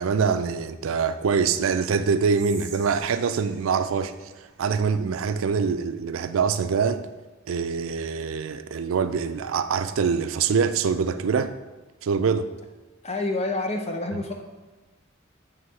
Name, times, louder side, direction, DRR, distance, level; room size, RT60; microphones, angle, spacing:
voice 1, 0.0-7.0 7.5-11.5 12.0-12.5, right 5 dB, 85° right, 0.4 m, -24 dB
Whispering, 2.3-5.5, right 6 dB, 60° right, 0.8 m, -47 dB
voice 2, 13.0-14.4, left 2 dB, 30° left, 0.7 m, -28 dB
7.7 x 3.2 x 4.7 m
head